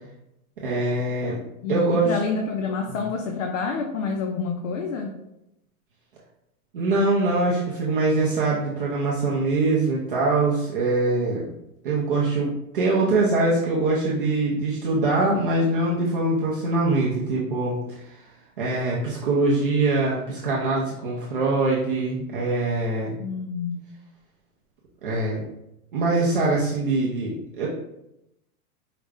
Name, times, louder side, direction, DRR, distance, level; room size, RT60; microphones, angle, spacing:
voice 1, 0.6-1.4 1.7-2.2 2.9-3.0 6.7-11.5 11.8-23.1 25.0-25.5 25.9-27.7, right 2 dB, 40° right, -5 dB, 0.5 m, -23 dB
voice 2, 1.6-5.2 23.2-23.8, left 4 dB, 60° left, 3 dB, 0.5 m, -28 dB
4.8 x 2.1 x 3.3 m, 0.86 s
supercardioid pair, 175°, 45 cm